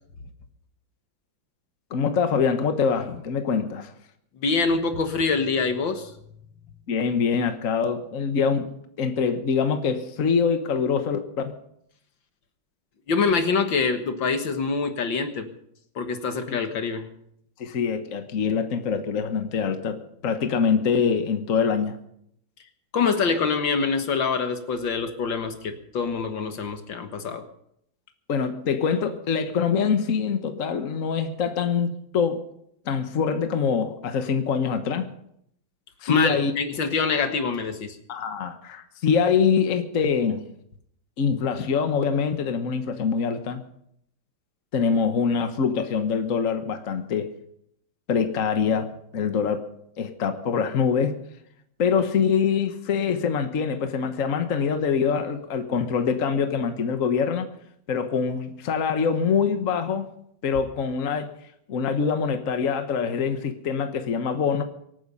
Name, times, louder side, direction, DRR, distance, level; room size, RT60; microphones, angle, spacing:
voice 1, 1.9-3.9 6.9-8.7 9.0-11.5 16.5-16.6 17.6-22.0 28.3-32.4 32.8-35.1 36.0-36.5 38.1-40.4 41.2-43.6 44.7-47.3 48.1-49.7 50.0-51.1 51.8-57.5 57.9-60.1 60.4-61.3 61.7-64.6, left 6 dB, 45° left, 1.5 m, -24 dB
voice 2, 4.4-6.1 13.1-15.5 16.0-17.1 22.9-27.4 36.1-38.0, left 4 dB, 70° left, 2.2 m, -25 dB
25.0 x 9.4 x 5.5 m
omnidirectional pair, 2.1 m